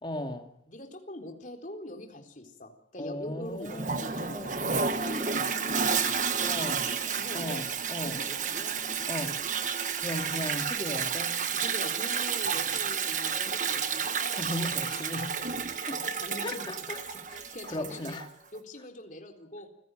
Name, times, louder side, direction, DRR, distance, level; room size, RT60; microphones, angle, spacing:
voice 1, 0.0-0.5 3.0-4.9 6.4-6.9 7.3-8.2 9.1-9.3 10.0-11.4 12.5-12.7 14.3-15.4 15.7-16.1 16.4-17.0 17.3-17.4 17.7-18.3, left 1 dB, 25° left, 2.7 m, -37 dB
voice 2, 0.7-7.7 8.0-9.5 11.5-14.4 14.9-15.3 15.9-16.6 17.3-18.2 18.5-19.7, left 1 dB, 45° left, 4.1 m, -43 dB
Toilet flush, 3.7-18.3, right 6 dB, 45° right, 1.4 m, -31 dB
29.0 x 16.5 x 9.3 m
head